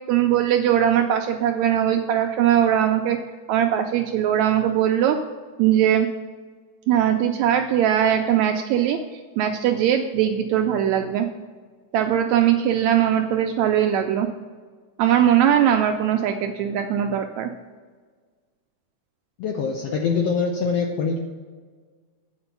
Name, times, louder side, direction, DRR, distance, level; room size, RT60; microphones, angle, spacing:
voice 1, 0.1-3.2 3.5-5.2 5.6-6.1 6.9-11.3 11.9-14.3 15.0-17.5, right 10 dB, 80° right, 5 dB, 1.6 m, -20 dB
voice 2, 19.4-21.2, left 5 dB, 75° left, 2 dB, 1.4 m, -24 dB
8.7 x 4.5 x 6.8 m, 1.5 s
omnidirectional pair, 3.6 m